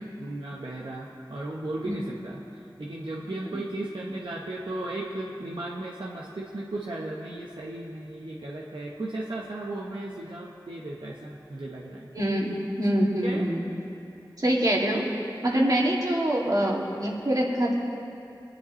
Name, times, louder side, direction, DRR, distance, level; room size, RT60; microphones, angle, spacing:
voice 1, 0.2-12.1 13.2-13.5, right 2 dB, 80° right, -4 dB, 1.1 m, -35 dB
voice 2, 12.1-13.6 14.4-15.0 15.4-17.7, right 1 dB, 50° right, -3 dB, 2.4 m, -25 dB
22.0 x 10.5 x 3.2 m, 2.8 s
wide cardioid pair, 40°, 8 cm